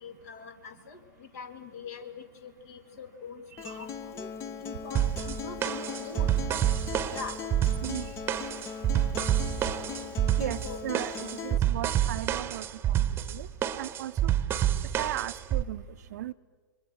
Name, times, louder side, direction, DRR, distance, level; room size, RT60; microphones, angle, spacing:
voice 1, 0.0-4.3 4.6-6.3 7.1-7.4 10.6-10.8, left 5 dB, 55° left, 8 dB, 2.6 m, -43 dB
Acoustic guitar, 3.6-11.6, left 6 dB, 25° left, 0.9 m, -39 dB
sound 1, 5.0-15.6, right 11 dB, 20° right, 1.1 m, -28 dB
voice 2, 7.8-8.1 10.4-13.5 13.8-14.3 15.0-15.8 16.1-16.3, right 13 dB, 55° right, 13 dB, 0.7 m, -36 dB
28.0 x 23.0 x 6.3 m, 1.4 s
figure-of-eight pair, 110°, 11 cm